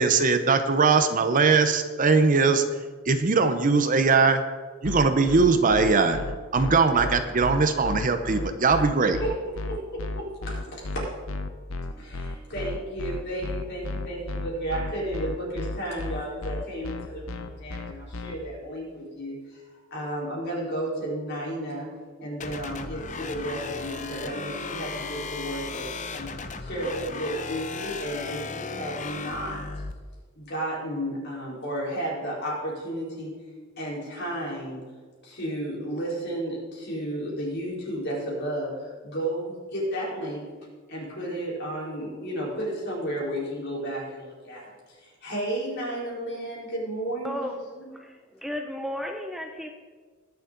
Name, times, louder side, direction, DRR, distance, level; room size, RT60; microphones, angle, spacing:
voice 1, 0.0-2.6 3.1-4.4 4.8-6.2 6.5-9.2, right 4 dB, 40° right, 9 dB, 0.7 m, -21 dB
sound 1, 4.8-18.4, left 2 dB, 70° left, 0.8 m, -33 dB
voice 2, 9.7-11.1 12.0-19.6 19.9-21.9 22.2-26.3 26.6-29.6 30.4-33.3 33.8-34.9 35.2-40.5 40.9-47.9, right 1 dB, 55° left, -4 dB, 4.2 m, -33 dB
sound 2, 22.4-29.9, left 4 dB, 35° left, 0.7 m, -36 dB
voice 3, 48.4-49.7, left 1 dB, ahead, 4 dB, 0.6 m, -33 dB
20.5 x 7.1 x 3.9 m, 1.5 s
head